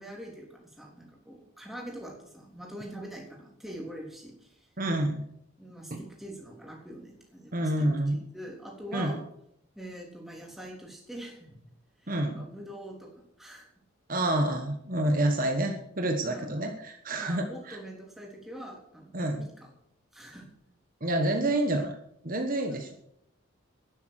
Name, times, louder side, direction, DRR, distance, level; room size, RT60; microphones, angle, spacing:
voice 1, 0.0-4.7 5.6-9.3 9.8-11.7 12.0-13.7 16.3-16.5 17.2-19.7 20.1-20.5 22.7-22.9, right 1 dB, ahead, -1 dB, 3.5 m, -44 dB
voice 2, 4.8-5.2 5.9-6.0 7.5-8.2 8.9-9.2 12.1-12.4 14.1-17.8 19.1-19.4 21.0-22.0 22.2-22.9, right 1 dB, 40° right, 4 dB, 1.3 m, -28 dB
11.5 x 11.0 x 6.6 m, 0.73 s
head